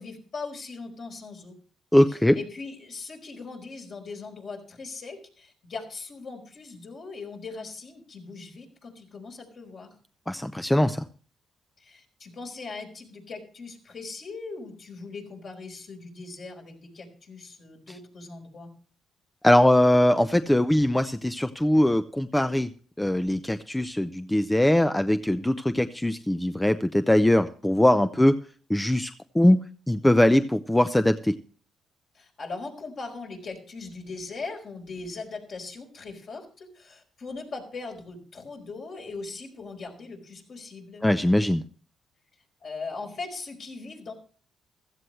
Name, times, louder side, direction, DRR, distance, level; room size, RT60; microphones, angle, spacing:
voice 1, 0.0-1.5 2.1-9.9 11.8-18.7 32.1-41.1 42.6-44.1, left 4 dB, 55° left, 2 dB, 4.6 m, -40 dB
voice 2, 1.9-2.4 10.3-11.1 19.4-22.7 23.0-28.4 28.7-29.6 29.9-31.3 41.0-41.6, left 1 dB, 10° left, 10 dB, 0.6 m, -21 dB
15.5 x 14.0 x 3.2 m, 0.41 s
cardioid pair, 90°, 0 cm